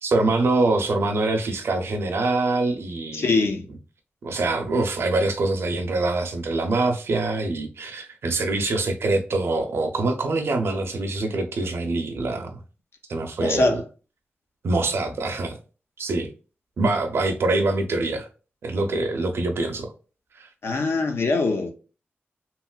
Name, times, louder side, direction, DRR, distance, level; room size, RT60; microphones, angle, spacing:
voice 1, 0.0-3.5 4.2-12.6 13.1-13.8 14.6-15.6 16.0-16.3 16.8-18.3 18.6-19.9 20.4-20.5, right 2 dB, 80° right, 0.5 m, -24 dB
voice 2, 3.1-3.7 13.4-13.8 20.6-21.7, left 3 dB, 80° left, 0.6 m, -22 dB
3.0 x 2.8 x 2.2 m
wide cardioid pair, 125°, 4 cm